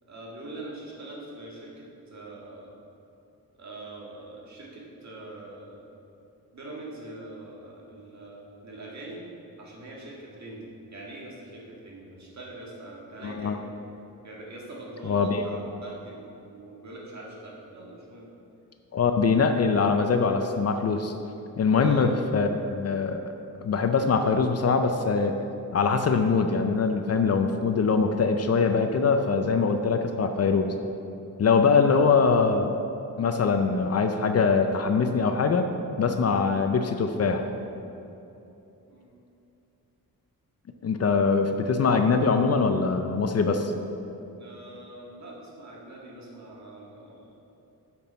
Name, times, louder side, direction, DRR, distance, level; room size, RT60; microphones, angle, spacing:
voice 1, 0.0-2.8 3.6-5.9 6.5-9.2 9.6-13.7 14.2-18.3 21.6-22.1 38.9-39.1 44.4-47.4, right 2 dB, 50° right, -3 dB, 1.7 m, -43 dB
voice 2, 13.2-13.6 15.1-15.4 18.9-21.1 21.6-23.3 23.6-25.4 25.7-30.7 31.4-32.7 33.2-35.7 36.0-37.4 40.8-43.7, left 5 dB, 45° left, 6 dB, 0.5 m, -23 dB
7.0 x 6.0 x 5.6 m, 2.9 s
wide cardioid pair, 130°, 36 cm